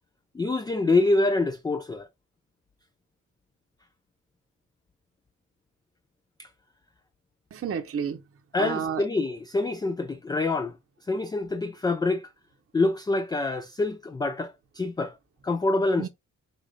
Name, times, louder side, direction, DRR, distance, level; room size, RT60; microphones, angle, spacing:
voice 1, 0.4-2.1 8.5-10.7 11.1-12.3 12.7-15.1 15.4-16.1, left 2 dB, 15° left, 0.3 m, -26 dB
voice 2, 7.5-9.1 16.0-16.1, right 7 dB, 45° right, 0.8 m, -31 dB
5.1 x 2.4 x 3.4 m
cardioid pair, 105°, 30 cm